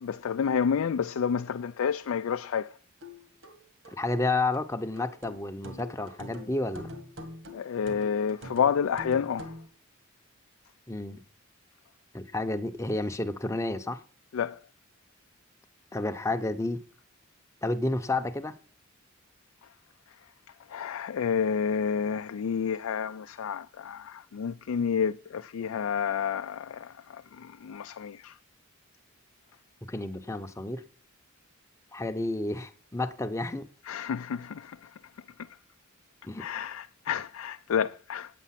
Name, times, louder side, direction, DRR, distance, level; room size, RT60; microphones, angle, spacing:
voice 1, 0.0-2.7 7.5-9.5 14.3-14.6 20.7-28.3 33.9-34.8 36.4-38.3, left 7 dB, 90° left, 0.4 m, -30 dB
sound 1, 3.0-9.7, left 1 dB, 65° right, 1.9 m, -45 dB
voice 2, 4.0-6.9 10.9-11.2 12.1-14.0 15.9-16.8 17.6-18.6 29.8-30.8 31.9-33.7 36.2-36.5, left 2 dB, 15° left, 0.7 m, -31 dB
9.0 x 8.4 x 5.8 m
head